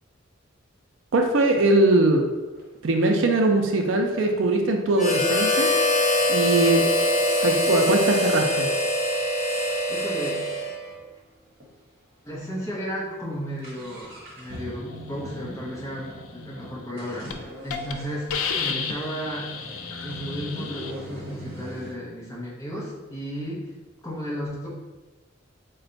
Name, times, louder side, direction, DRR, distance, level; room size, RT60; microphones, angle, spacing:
voice 1, 1.1-2.2 2.8-5.7 6.3-6.8 7.4-8.7, right 2 dB, 65° right, 3 dB, 0.4 m, -21 dB
sound 1, 2.6-2.7 3.1-5.8 6.4-6.5 6.8-7.0 7.4-11.0 11.3-11.4 11.6-11.7 12.3-12.5 12.8-21.9, equal, 45° right, 1.0 m, -41 dB
Harmonica, 5.0-11.0, left 1 dB, 35° left, 0.6 m, -23 dB
voice 2, 9.9-10.5 12.2-19.5 20.0-23.7 24.0-24.7, equal, 15° left, -6 dB, 0.9 m, -34 dB
Hiss, 16.7-16.9 17.3-17.4 17.7-17.9 18.3-20.9, left 6 dB, 85° left, 0.4 m, -31 dB
4.1 x 2.2 x 3.9 m, 1.2 s
head